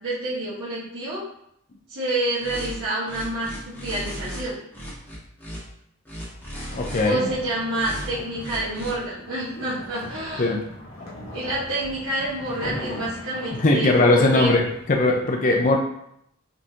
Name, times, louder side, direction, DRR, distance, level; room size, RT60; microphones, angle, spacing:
voice 1, 0.0-1.2 1.9-4.5 7.0-10.6 11.3-14.5, right 1 dB, 80° right, -11 dB, 1.3 m, -28 dB
sound 1, 2.4-2.7 3.0-4.4 4.7-5.6 6.0-7.1 7.7-8.1 8.4-8.9, equal, 10° left, 1.4 m, -36 dB
sound 2, 6.7-15.2, left 1 dB, 65° left, 1.3 m, -39 dB
voice 2, 6.7-7.3 10.4-10.6 13.6-15.8, left 2 dB, 40° left, 0 dB, 0.5 m, -20 dB
5.1 x 3.5 x 2.8 m, 0.74 s
head